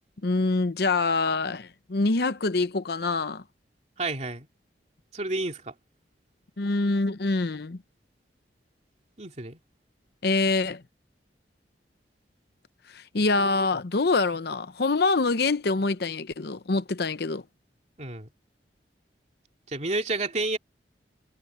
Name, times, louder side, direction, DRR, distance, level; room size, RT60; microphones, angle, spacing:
voice 1, 0.2-3.4 6.6-7.8 10.2-10.8 12.9-17.4, left 3 dB, 60° left, 0.8 m, -25 dB
voice 2, 4.0-4.5 5.1-5.7 9.2-9.6 18.0-18.3 19.7-20.6, right 2 dB, 40° right, 2.8 m, -30 dB
head